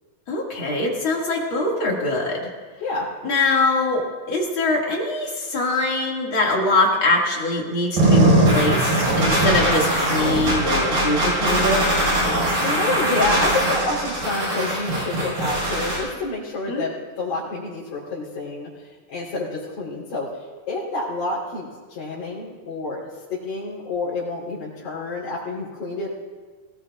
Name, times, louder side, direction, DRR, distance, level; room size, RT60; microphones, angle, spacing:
voice 1, 0.3-2.5 3.2-11.8 16.7-16.8, left 2 dB, 40° left, -2 dB, 2.7 m, -23 dB
sound 1, 8.0-16.0, right 1 dB, 80° right, 7.4 m, -20 dB
voice 2, 12.3-23.0 23.3-26.1, left 3 dB, 60° left, -10 dB, 5.3 m, -28 dB
20.5 x 19.0 x 2.5 m, 1.5 s
omnidirectional pair, 3.9 m